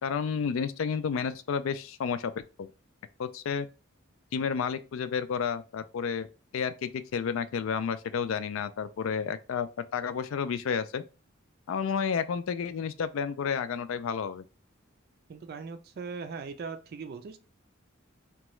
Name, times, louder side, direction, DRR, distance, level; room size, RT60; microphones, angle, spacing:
voice 1, 0.0-2.3 2.6-2.7 3.2-3.7 4.3-6.3 6.5-11.0 11.7-14.4, left 6 dB, 70° left, 0.3 m, -31 dB
voice 2, 15.3-17.4, right 5 dB, 50° right, 0.3 m, -39 dB
3.0 x 2.3 x 3.0 m
head